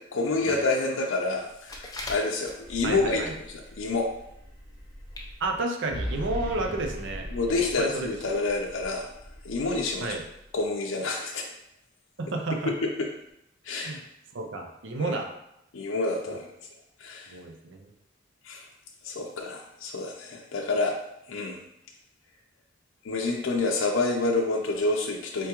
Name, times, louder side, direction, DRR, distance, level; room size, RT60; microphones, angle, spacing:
voice 1, 0.1-3.4 3.8-4.1 7.3-9.1 9.4-10.2 10.5-11.5 12.7-13.1 13.6-14.0 15.0-15.2 15.7-16.5 17.0-17.3 18.4-18.7 19.0-21.0 21.3-21.6 23.0-25.5, left 3 dB, 85° left, 0 dB, 0.5 m, -28 dB
sound 1, 1.5-2.9 3.3-3.8 4.1-4.2 4.8-4.9 5.1-5.3 5.7-5.8 6.2-6.3, left 2 dB, 20° left, 0.6 m, -40 dB
sound 2, 2.5-10.6, equal, 50° right, 1.5 m, -40 dB
voice 2, 2.8-3.3 5.4-7.3 7.8-8.2 10.0-10.2 12.2-12.7 13.8-14.0 14.3-15.3 17.3-17.8, right 2 dB, 65° right, 3 dB, 0.5 m, -31 dB
4.5 x 3.4 x 2.9 m, 0.79 s
head